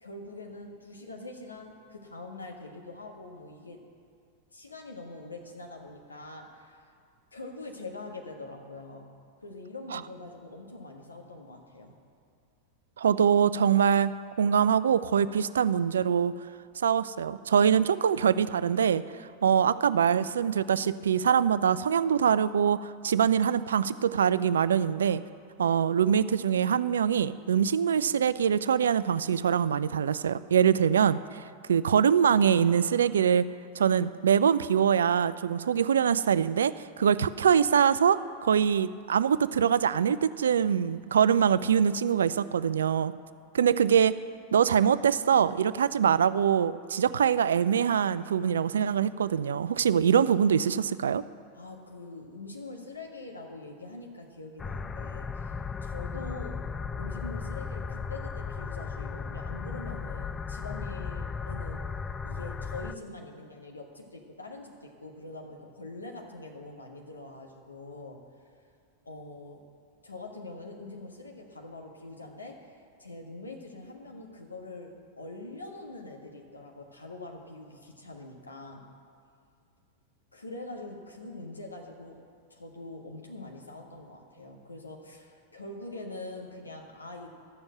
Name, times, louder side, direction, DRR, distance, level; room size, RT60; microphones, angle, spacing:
voice 1, 0.0-3.8 4.5-6.8 7.3-9.1 9.4-12.0 51.5-56.7 57.0-61.9 62.2-68.2 69.0-69.6 70.0-78.8 80.3-82.2 82.5-87.3, left 2 dB, 80° left, 1 dB, 1.4 m, -44 dB
voice 2, 13.0-14.1 14.4-16.3 16.8-25.2 25.6-33.5 33.8-43.1 43.5-44.1 44.5-51.2, right 8 dB, 65° right, 16 dB, 0.3 m, -24 dB
sound 1, 54.6-63.0, left 5 dB, 15° left, 0.4 m, -36 dB
12.5 x 7.0 x 7.7 m, 2.3 s
figure-of-eight pair, 90°, 0 cm